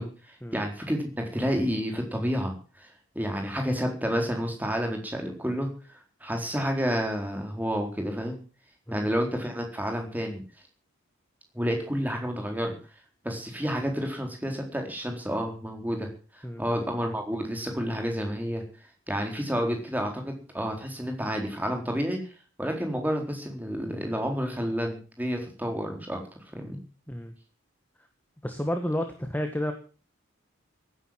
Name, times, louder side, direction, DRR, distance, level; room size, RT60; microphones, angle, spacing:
voice 1, 0.0-2.9 3.1-8.4 8.9-10.4 11.5-12.7 13.2-18.6 19.1-22.3 22.6-26.2 26.5-26.8, equal, 10° right, 3 dB, 4.2 m, -30 dB
voice 2, 28.4-29.7, left 1 dB, 10° left, 6 dB, 1.5 m, -31 dB
16.5 x 10.0 x 7.7 m, 0.38 s
head